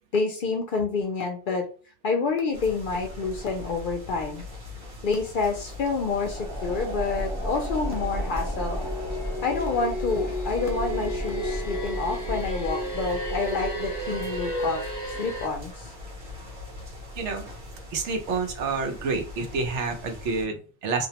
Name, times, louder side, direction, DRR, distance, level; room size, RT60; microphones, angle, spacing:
voice 1, 0.1-1.7 2.0-4.4 5.0-8.9 9.4-14.8 15.2-15.9, left 4 dB, 60° left, 3 dB, 0.6 m, -28 dB
sound 1, 2.5-20.5, left 2 dB, 60° right, 1.0 m, -42 dB
sound 2, 5.7-15.0, equal, 35° right, 0.5 m, -34 dB
sound 3, 6.5-15.5, equal, 20° left, 0.7 m, -34 dB
voice 2, 17.9-21.1, right 4 dB, 85° right, 4 dB, 1.0 m, -28 dB
2.5 x 2.0 x 2.8 m, 0.37 s
omnidirectional pair, 1.2 m